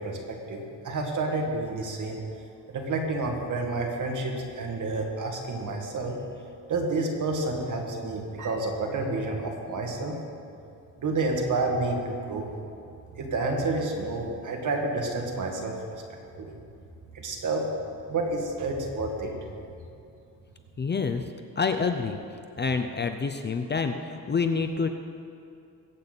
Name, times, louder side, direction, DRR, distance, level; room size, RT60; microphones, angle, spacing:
voice 1, 0.0-2.2 2.7-6.1 6.7-10.2 11.0-12.5 13.2-16.0 16.4-16.5 17.1-17.7 18.1-19.3, right 2 dB, 50° right, 1 dB, 2.2 m, -29 dB
voice 2, 20.8-21.2 21.6-22.2 22.6-24.9, left 5 dB, 25° left, 7 dB, 0.6 m, -27 dB
21.5 x 8.7 x 4.1 m, 2.6 s
cardioid pair, 120°, 39 cm